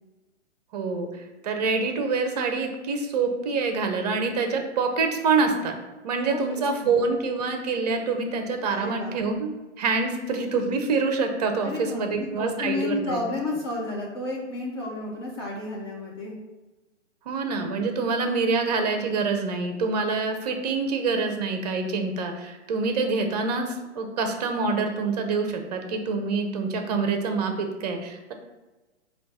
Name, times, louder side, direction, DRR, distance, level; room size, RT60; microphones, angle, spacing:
voice 1, 0.7-1.1 1.4-5.7 6.0-9.5 9.8-13.2 17.3-28.3, right 4 dB, 35° right, 5 dB, 0.6 m, -26 dB
voice 2, 8.7-9.2 11.6-16.4, left 2 dB, 20° left, -4 dB, 0.4 m, -31 dB
5.2 x 2.3 x 3.4 m, 1.2 s
figure-of-eight pair, 115°, 37 cm